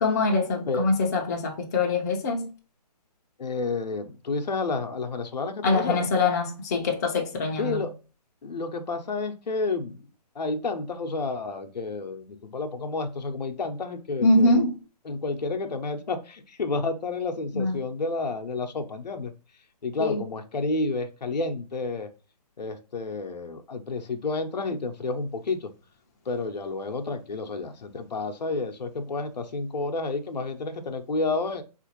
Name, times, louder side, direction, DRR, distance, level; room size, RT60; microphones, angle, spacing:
voice 1, 0.0-2.5 5.6-7.8 14.2-14.7 17.5-17.8 20.0-20.2, left 2 dB, 25° left, 0.5 m, -23 dB
voice 2, 3.4-6.1 7.6-7.9 8.4-10.0 10.4-14.6 15.1-19.3 19.8-22.1 22.6-25.7 26.3-31.6, left 3 dB, 85° left, 0.6 m, -30 dB
3.6 x 2.5 x 2.9 m
hypercardioid pair, 150°, 21 cm